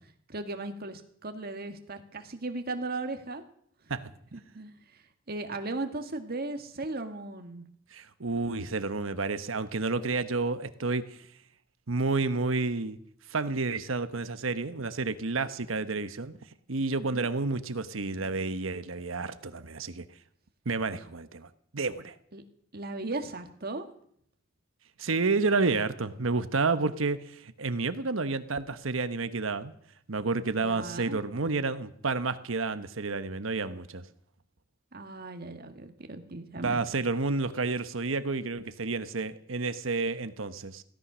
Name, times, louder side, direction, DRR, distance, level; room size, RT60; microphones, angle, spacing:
voice 1, 0.3-3.4 4.3-7.7 17.0-17.3 22.3-22.4 22.7-23.9 30.6-31.2 34.9-36.8, right 2 dB, 50° right, 6 dB, 1.7 m, -37 dB
voice 2, 7.9-11.2 11.9-13.0 13.3-16.4 16.7-20.0 20.6-22.1 25.0-29.7 30.1-34.0 36.6-40.8, right 3 dB, 85° right, 12 dB, 1.1 m, -30 dB
16.5 x 13.5 x 6.2 m, 0.66 s
head